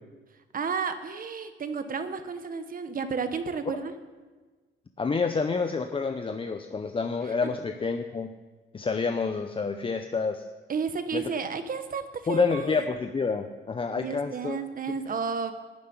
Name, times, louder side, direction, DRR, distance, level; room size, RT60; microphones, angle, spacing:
voice 1, 0.5-3.9 7.2-7.5 10.7-12.0 12.3-12.8 13.9-15.5, right 5 dB, 45° right, 9 dB, 1.1 m, -32 dB
voice 2, 5.0-8.3 8.7-10.4 11.1-11.3 12.3-14.6, left 4 dB, 25° left, 7 dB, 0.7 m, -28 dB
11.5 x 7.4 x 9.6 m, 1.3 s
cardioid pair, 90°, 20 cm